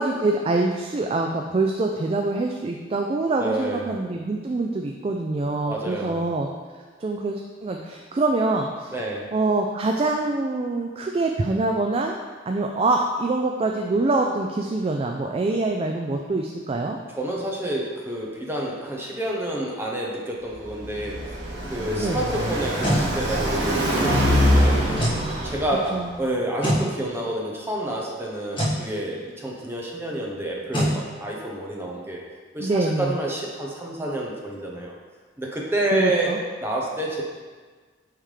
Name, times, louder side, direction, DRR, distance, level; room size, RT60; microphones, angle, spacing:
voice 1, 0.0-6.5 7.0-8.9 9.3-12.1 12.5-17.0 22.0-22.2 24.5-24.7 25.2-25.5 25.9-26.1 32.6-33.1 35.9-36.4, right 2 dB, 30° right, 2 dB, 0.3 m, -25 dB
voice 2, 3.4-4.0 5.7-6.3 8.9-9.3 17.2-21.2 21.7-25.0 25.4-32.2 32.5-34.9 35.4-37.2, right 1 dB, 15° right, -2 dB, 0.9 m, -29 dB
Car passing by, 20.5-26.1, equal, 75° right, 1.3 m, -23 dB
sound 1, 22.5-23.1 24.9-25.2 26.6-26.9 28.5-28.8 30.7-31.0, equal, 25° left, 1.7 m, -23 dB
8.9 x 3.4 x 3.3 m, 1.5 s
head